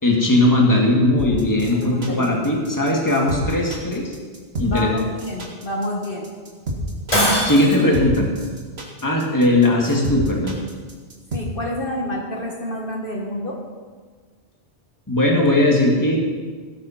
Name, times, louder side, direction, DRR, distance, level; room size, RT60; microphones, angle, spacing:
voice 1, 0.0-4.1 4.6-4.9 7.4-8.3 9.0-10.6 15.1-16.2, left 1 dB, 15° left, -1 dB, 2.1 m, -18 dB
sound 1, 1.2-11.4, right 1 dB, 65° right, 2.3 m, -31 dB
voice 2, 1.7-2.3 4.6-6.3 11.3-13.6, left 1 dB, 50° left, -1 dB, 1.8 m, -28 dB
Shatter, 7.1-8.0, equal, 35° left, 3.6 m, -20 dB
18.0 x 7.8 x 5.8 m, 1.5 s
omnidirectional pair, 1.1 m